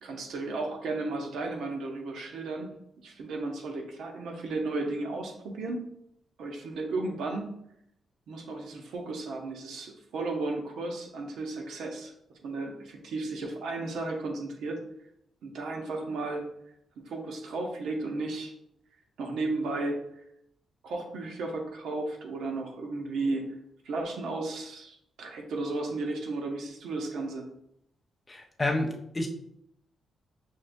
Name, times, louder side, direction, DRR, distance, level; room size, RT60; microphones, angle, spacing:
voice 1, 0.0-2.7 3.0-5.8 6.4-7.5 8.3-12.1 12.4-14.8 15.4-16.5 17.1-18.5 19.2-20.0 20.8-23.5 23.8-27.5, right 2 dB, 80° right, 2 dB, 0.7 m, -34 dB
voice 2, 28.3-29.3, left 2 dB, 20° left, 1 dB, 0.5 m, -29 dB
6.2 x 2.1 x 2.6 m, 0.76 s
cardioid pair, 135°, 0 cm